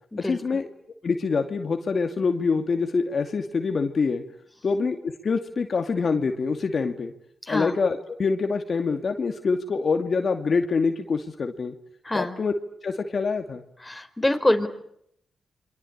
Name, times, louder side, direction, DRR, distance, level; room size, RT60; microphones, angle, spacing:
voice 1, 0.2-0.7 1.0-4.2 4.6-7.1 7.5-11.7 12.1-12.5 12.8-13.6, left 4 dB, 55° left, 5 dB, 2.4 m, -25 dB
voice 2, 12.0-12.4 13.8-14.7, left 1 dB, 15° left, 6 dB, 4.5 m, -25 dB
28.0 x 24.0 x 8.8 m, 0.73 s
supercardioid pair, 55°, 0 cm